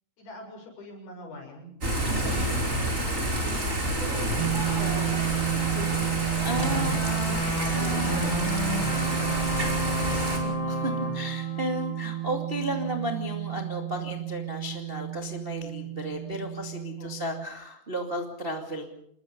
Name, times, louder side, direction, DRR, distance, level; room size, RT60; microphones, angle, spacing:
voice 1, 0.2-1.7 2.0-2.8 3.1-5.1 5.4-6.0 6.7-7.3 8.1-9.4 10.0-10.5 17.0-17.2, left 2 dB, 50° left, 1 dB, 8.8 m, -42 dB
Thunder / Rain, 1.8-10.4, right 1 dB, 15° right, 4.8 m, -29 dB
voice 2, 2.0-2.5 6.4-6.9 7.7-8.2 10.7-10.8 11.1-18.9, right 1 dB, 40° right, 3 dB, 0.8 m, -34 dB
sound 1, 4.4-17.5, right 15 dB, 85° right, 2.1 m, -31 dB
Let's Learn - Logotone, 6.6-12.7, left 4 dB, 75° left, 7.4 m, -33 dB
28.0 x 21.0 x 5.4 m, 0.70 s
omnidirectional pair, 5.8 m